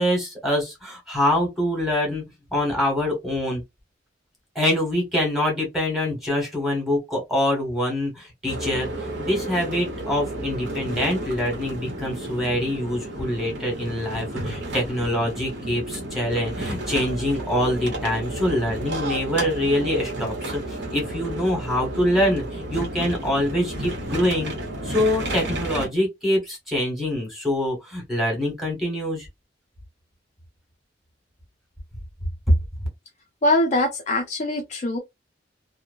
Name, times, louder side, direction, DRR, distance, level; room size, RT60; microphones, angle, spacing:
voice 1, 0.0-2.2 2.5-3.6 4.5-24.5 24.8-29.3, left 1 dB, ahead, 1.3 m, -25 dB
sound 1, 8.5-25.9, right 1 dB, 65° right, 1.0 m, -32 dB
voice 2, 33.4-35.0, left 1 dB, 40° left, 0.4 m, -22 dB
2.9 x 2.0 x 2.5 m
head